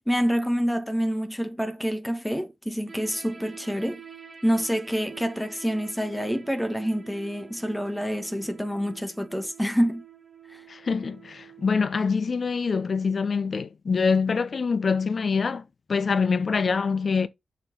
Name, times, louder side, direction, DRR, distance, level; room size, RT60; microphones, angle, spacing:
voice 1, 0.0-4.0 4.4-10.0 10.5-10.6, equal, 5° left, 1.5 m, -27 dB
sound 1, 2.9-11.8, right 8 dB, 40° right, 2.4 m, -47 dB
voice 2, 10.7-15.6 15.9-17.3, left 5 dB, 55° left, 0.7 m, -25 dB
7.2 x 4.4 x 5.3 m
cardioid pair, 70°, 0 cm